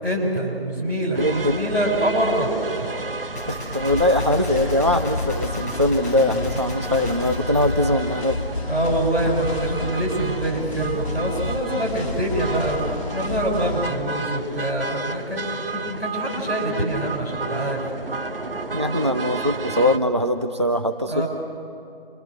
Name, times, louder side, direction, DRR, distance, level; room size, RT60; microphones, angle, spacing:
voice 1, 0.0-2.9 8.7-17.9 21.1-21.3, right 1 dB, 80° right, 0 dB, 6.5 m, -25 dB
sound 1, 1.1-20.0, right 3 dB, 60° right, 1.4 m, -32 dB
voice 2, 1.2-1.6 3.5-8.4 18.7-21.2, left 1 dB, 30° right, 6 dB, 0.5 m, -21 dB
Gunshot gunfire, 3.3-8.6, left 2 dB, 15° left, 1.4 m, -37 dB
sound 2, 3.9-13.9, left 3 dB, 30° left, 2.2 m, -30 dB
27.5 x 23.5 x 6.5 m, 2.5 s
figure-of-eight pair, 160°, 31 cm